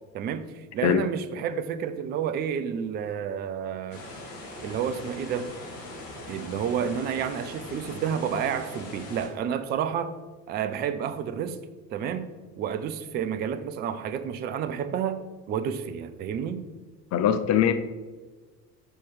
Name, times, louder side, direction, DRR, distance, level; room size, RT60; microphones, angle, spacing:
voice 1, 0.1-4.0 4.6-5.5 6.3-10.1 10.5-11.6 11.9-12.3 12.6-16.6, right 8 dB, 25° right, 11 dB, 0.3 m, -30 dB
sound 1, 3.9-9.3, left 1 dB, 65° left, 1.9 m, -41 dB
voice 2, 17.1-17.7, left 9 dB, 35° left, 10 dB, 0.5 m, -21 dB
5.5 x 4.5 x 4.6 m, 1.3 s
figure-of-eight pair, 65°, 49 cm